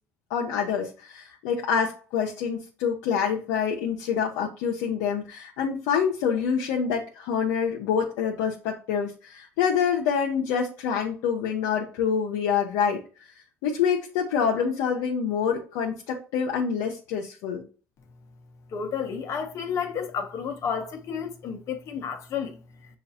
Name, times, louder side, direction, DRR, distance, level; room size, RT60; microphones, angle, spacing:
voice 1, 0.3-13.3 13.6-17.6, left 7 dB, 85° left, 0.7 m, -26 dB
voice 2, 18.7-22.6, left 7 dB, 55° left, 0.8 m, -31 dB
6.5 x 2.4 x 2.7 m
supercardioid pair, 90°, 6 cm